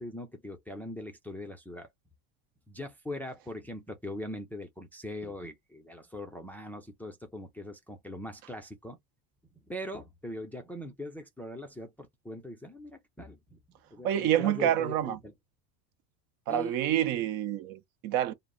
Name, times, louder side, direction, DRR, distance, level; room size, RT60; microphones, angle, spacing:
voice 1, 0.0-1.9 2.7-9.0 9.7-13.6 13.9-15.3 16.5-16.8, left 1 dB, 5° left, 0.4 m, -41 dB
voice 2, 14.0-15.2 16.5-18.3, right 11 dB, 55° right, 0.6 m, -27 dB
2.0 x 2.0 x 3.6 m
supercardioid pair, 100°, 42 cm